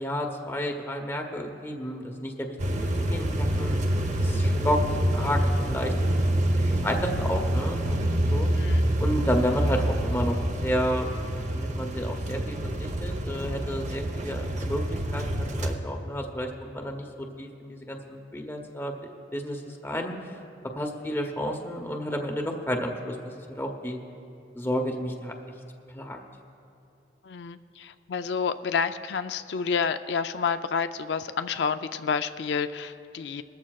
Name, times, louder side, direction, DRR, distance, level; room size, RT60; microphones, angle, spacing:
voice 1, 0.0-3.8 4.2-4.8 5.1-5.4 5.7-5.9 6.6-8.5 9.0-10.4 10.6-11.1 11.5-18.9 19.3-20.1 20.8-24.0 24.5-25.3 25.9-26.2, equal, 15° left, 2 dB, 0.8 m, -31 dB
sound 1, 2.6-15.8, right 1 dB, 45° right, 0.8 m, -27 dB
voice 2, 27.2-33.4, left 6 dB, 75° left, 10 dB, 0.4 m, -29 dB
21.0 x 13.5 x 2.3 m, 2.6 s
head